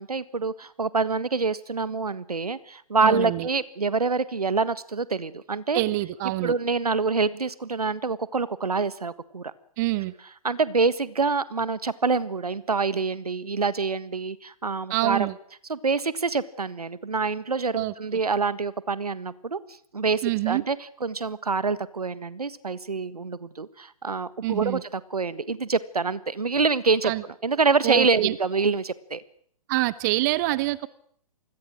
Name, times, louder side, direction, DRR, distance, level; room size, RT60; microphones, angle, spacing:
voice 1, 0.0-5.8 6.2-9.5 10.4-15.3 15.7-19.6 19.9-27.1 27.4-29.2, right 4 dB, 75° right, 17 dB, 1.5 m, -26 dB
voice 2, 3.0-3.5 5.7-6.5 9.8-10.1 14.9-15.3 17.7-17.9 20.2-20.6 24.4-24.8 27.0-27.2 27.8-28.3 29.7-30.9, right 19 dB, 30° right, 19 dB, 0.9 m, -26 dB
27.5 x 21.0 x 6.3 m, 0.64 s
figure-of-eight pair, 125°, 20 cm